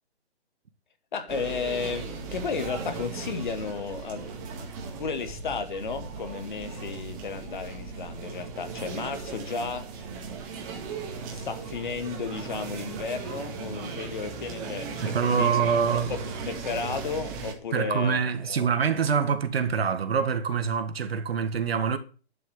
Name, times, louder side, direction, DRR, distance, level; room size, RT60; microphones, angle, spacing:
voice 1, 1.1-4.7 5.0-10.1 11.3-15.5 15.9-18.7, left 5 dB, 45° left, 1.9 m, -34 dB
sound 1, 1.3-17.5, right 5 dB, 20° right, 1.9 m, -37 dB
voice 2, 15.0-16.1 17.7-22.0, right 6 dB, 60° right, 1.9 m, -25 dB
11.5 x 6.2 x 7.9 m
hypercardioid pair, 170°, 34 cm